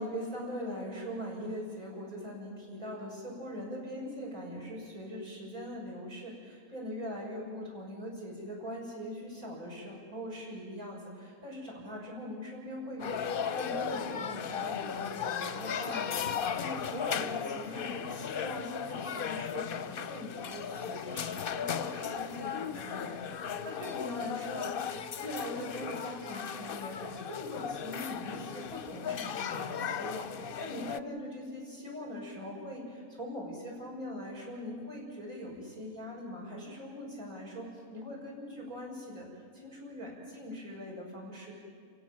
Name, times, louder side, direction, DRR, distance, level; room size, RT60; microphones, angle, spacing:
voice 1, 0.0-41.5, equal, 80° right, -2 dB, 7.2 m, -41 dB
sound 1, 13.0-31.0, left 7 dB, 55° left, 0.7 m, -36 dB
29.5 x 16.5 x 7.6 m, 2.4 s
omnidirectional pair, 1.5 m